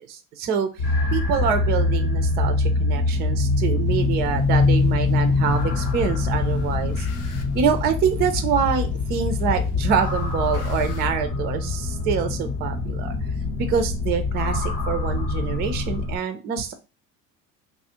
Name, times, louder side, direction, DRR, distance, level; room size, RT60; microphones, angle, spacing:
voice 1, 0.1-0.7 1.1-7.1 7.5-13.1 13.6-16.7, right 7 dB, 25° right, 8 dB, 0.3 m, -25 dB
sound 1, 0.8-16.2, left 3 dB, 80° left, 0.9 m, -24 dB
sound 2, 3.8-11.0, left 9 dB, 55° left, 0.7 m, -35 dB
2.3 x 2.0 x 2.8 m, 0.29 s
figure-of-eight pair, 65°, 49 cm